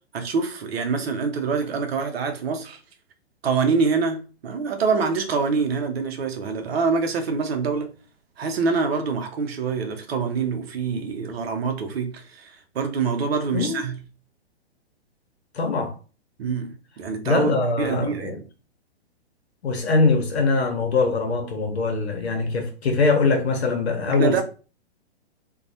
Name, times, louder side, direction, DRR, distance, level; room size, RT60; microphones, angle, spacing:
voice 1, 0.1-2.8 3.4-7.9 8.4-14.0 16.4-18.4 24.1-24.4, right 5 dB, 70° right, 0.6 m, -25 dB
voice 2, 13.5-13.8 15.5-15.9 17.2-18.3 19.6-24.4, left 4 dB, 80° left, 0.9 m, -22 dB
2.3 x 2.0 x 2.7 m
hypercardioid pair, 115°, 32 cm